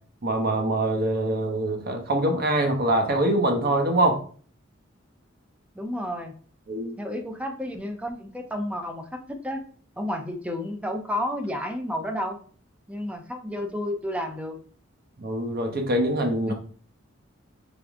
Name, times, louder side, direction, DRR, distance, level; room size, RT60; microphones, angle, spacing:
voice 1, 0.2-4.2 6.7-7.0 15.2-16.5, right 1 dB, 50° right, 4 dB, 0.9 m, -24 dB
voice 2, 5.7-6.3 7.0-9.6 10.0-12.4 12.9-14.6 16.5-16.6, left 1 dB, 5° right, 4 dB, 0.6 m, -31 dB
3.7 x 3.6 x 3.5 m, 0.43 s
head